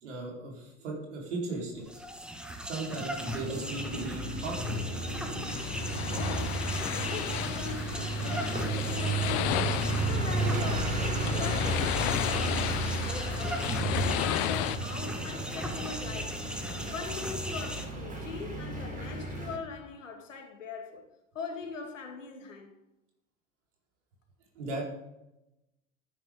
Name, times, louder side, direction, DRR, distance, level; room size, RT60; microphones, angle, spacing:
voice 1, 0.0-2.0 2.6-4.8 24.5-24.9, right 3 dB, 65° right, 4.8 m, -37 dB
sound 1, 1.7-17.9, equal, ahead, 1.7 m, -39 dB
sound 2, 3.2-19.6, right 2 dB, 20° right, 4.7 m, -33 dB
sound 3, 5.5-14.8, left 15 dB, 50° left, 0.8 m, -34 dB
voice 2, 6.1-16.5 16.9-21.0 21.3-22.7, left 5 dB, 75° left, 2.6 m, -41 dB
14.0 x 9.3 x 5.3 m
figure-of-eight pair, 70°, 38 cm